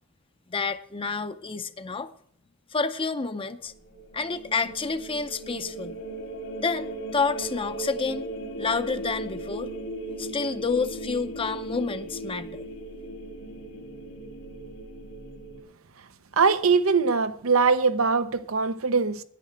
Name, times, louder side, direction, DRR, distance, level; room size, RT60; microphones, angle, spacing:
voice 1, 0.5-2.1 2.7-3.7 4.1-6.0 6.6-8.2 8.6-9.7 10.2-12.6, left 4 dB, 25° left, 0.6 m, -29 dB
sound 1, 3.7-15.6, right 1 dB, 75° left, 2.3 m, -37 dB
voice 2, 16.4-19.2, right 5 dB, 90° right, 0.8 m, -22 dB
10.5 x 9.1 x 7.4 m
head